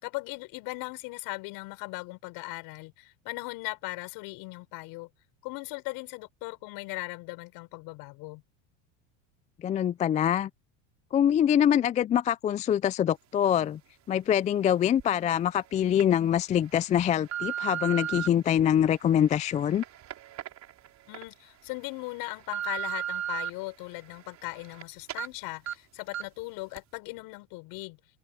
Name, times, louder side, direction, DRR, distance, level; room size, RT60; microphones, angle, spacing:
voice 1, 0.0-5.1 5.4-8.4 21.1-28.0, left 25 dB, 60° left, 6.1 m, -38 dB
voice 2, 9.6-10.5 11.1-13.8 14.1-19.8, left 10 dB, 20° left, 0.3 m, -24 dB
sound 1, 15.0-15.1 15.7-16.0 16.7-18.3 18.9-21.2 21.7-21.8 22.2-23.5 23.9-24.8 25.1-25.3 25.7-25.8 26.1-26.4 26.8-26.9, right 10 dB, 45° right, 4.8 m, -36 dB
supercardioid pair, 105°, 39 cm